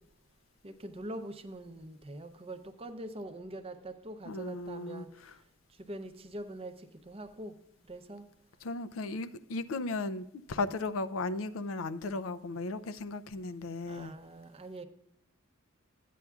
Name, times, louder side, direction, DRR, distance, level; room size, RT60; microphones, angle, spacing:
voice 1, 0.6-5.1 5.9-6.8 7.1-7.5 7.9-8.3 10.5-10.7 13.9-14.8, right 1 dB, 30° right, 0.6 m, -43 dB
voice 2, 4.2-5.3 8.6-14.1, left 3 dB, 80° left, 0.5 m, -36 dB
13.5 x 9.2 x 2.4 m
head